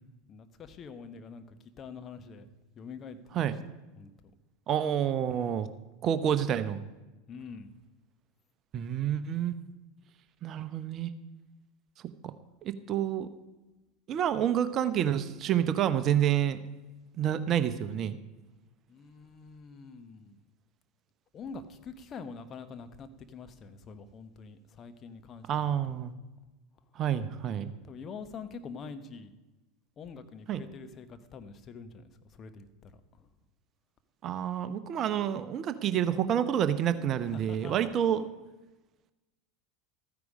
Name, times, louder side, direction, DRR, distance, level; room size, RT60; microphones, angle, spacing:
voice 1, 0.3-2.5 2.8-3.5 4.0-4.3 5.3-5.6 7.3-7.7 18.9-20.4 21.3-26.0 27.8-29.3 30.0-33.3 37.2-37.9, left 5 dB, 35° left, 9 dB, 1.1 m, -46 dB
voice 2, 4.7-5.7 6.0-6.8 8.7-9.5 10.4-11.1 12.6-13.3 14.1-16.6 17.2-18.2 25.5-26.1 27.0-27.7 30.5-30.6 34.2-38.3, right 10 dB, 40° right, 12 dB, 0.8 m, -28 dB
13.5 x 9.6 x 5.1 m, 1.1 s
figure-of-eight pair, 80°, 0 cm